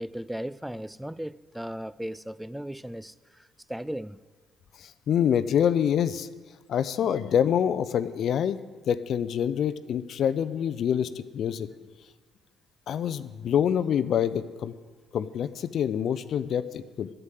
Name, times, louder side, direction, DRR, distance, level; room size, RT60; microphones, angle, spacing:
voice 1, 0.0-4.2, equal, 5° right, 0.3 m, -36 dB
voice 2, 4.8-6.3 6.7-8.6 8.9-11.7 12.9-14.7 15.1-17.1, left 9 dB, 60° left, 0.5 m, -26 dB
9.7 x 8.0 x 9.2 m
hypercardioid pair, 55°, 0 cm